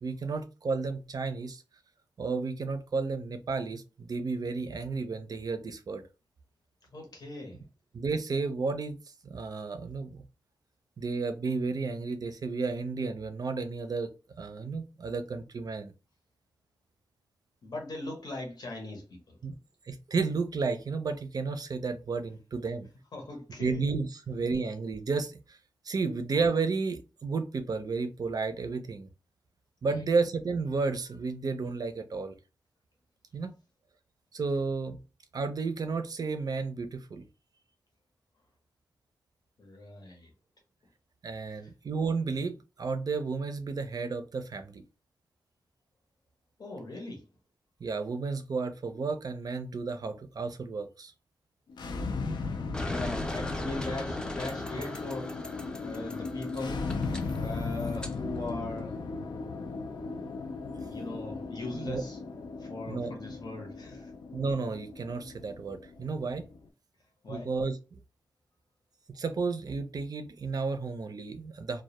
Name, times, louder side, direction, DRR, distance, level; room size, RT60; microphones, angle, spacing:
voice 1, 0.0-1.6 2.2-6.0 7.9-9.0 9.2-10.2 11.0-14.1 14.4-15.9 19.4-19.5 19.9-22.9 23.6-25.6 25.9-29.1 29.8-32.4 33.3-33.5 34.3-35.0 35.3-37.2 41.2-44.8 47.8-51.1 61.7-62.0 62.9-63.1 64.3-66.4 67.3-67.7 69.1-71.8, right 4 dB, 60° right, 0.4 m, -32 dB
voice 2, 6.9-7.6 17.6-19.4 23.1-23.8 29.8-30.0 39.6-40.3 41.5-41.7 46.6-47.3 52.6-56.9 57.4-59.0 60.9-62.2 62.6-64.1 67.2-67.5, left 2 dB, 65° left, 0.7 m, -40 dB
sound 1, 51.7-66.7, left 4 dB, 90° left, 0.3 m, -37 dB
sound 2, 52.7-58.1, left 1 dB, 10° left, 0.4 m, -39 dB
2.1 x 2.1 x 2.9 m
wide cardioid pair, 80°, 7 cm